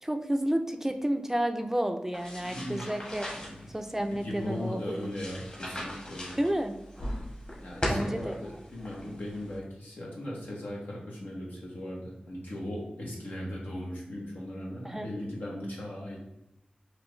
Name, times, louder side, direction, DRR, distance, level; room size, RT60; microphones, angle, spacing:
voice 1, 0.0-3.3 3.7-5.1 6.4-6.7 7.9-8.6 14.8-15.1, right 1 dB, 15° right, 6 dB, 0.4 m, -31 dB
sound 1, 2.1-9.6, equal, 40° left, 1.5 m, -39 dB
voice 2, 2.4-2.8 3.4-3.6 4.1-6.4 7.6-16.2, left 1 dB, 80° left, -4 dB, 1.2 m, -38 dB
4.3 x 2.6 x 3.2 m, 0.89 s
cardioid pair, 45°, 3 cm